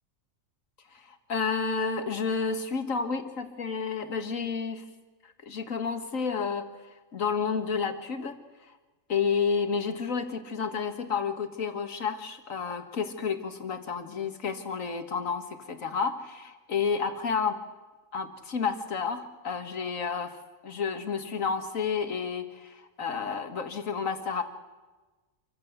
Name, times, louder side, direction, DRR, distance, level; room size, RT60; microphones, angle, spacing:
voice 1, 0.9-4.8 5.2-6.7 7.1-8.4 9.1-17.6 18.1-20.4 20.6-24.4, left 5 dB, 80° left, 8 dB, 2.1 m, -30 dB
27.0 x 15.5 x 8.0 m, 1.2 s
omnidirectional pair, 1.4 m